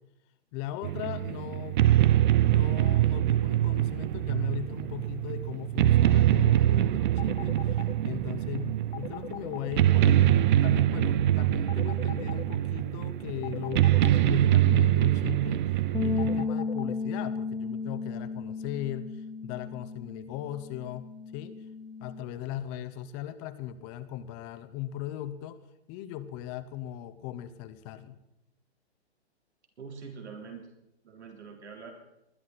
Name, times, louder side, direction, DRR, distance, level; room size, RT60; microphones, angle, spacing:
voice 1, 0.5-1.8 2.4-15.6 16.0-21.1 21.3-21.6 22.0-25.6 25.9-28.2, left 12 dB, 25° left, 12 dB, 0.8 m, -38 dB
sound 1, 0.8-16.4, right 12 dB, 45° right, 0.5 m, -24 dB
sound 2, 7.2-7.9 8.9-9.7 11.7-12.4 13.4-14.2 16.2-16.9, left 11 dB, 65° left, 0.8 m, -39 dB
sound 3, 15.9-22.2, left 5 dB, 5° left, 1.4 m, -34 dB
voice 2, 29.8-30.7 31.0-31.9, right 5 dB, 80° right, 2 dB, 3.4 m, -44 dB
20.5 x 12.0 x 4.1 m, 0.86 s
hypercardioid pair, 140°, 34 cm